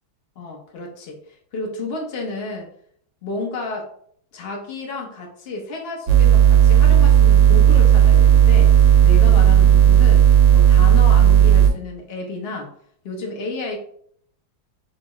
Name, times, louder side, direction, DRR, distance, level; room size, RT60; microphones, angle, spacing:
voice 1, 0.4-2.7 3.2-3.9 4.3-8.8 9.0-10.2 10.5-12.7 13.0-13.8, left 3 dB, 50° left, 0 dB, 0.7 m, -31 dB
sound 1, 6.1-11.7, right 10 dB, 70° right, 1.2 m, -12 dB
5.5 x 2.3 x 3.0 m, 0.63 s
omnidirectional pair, 2.0 m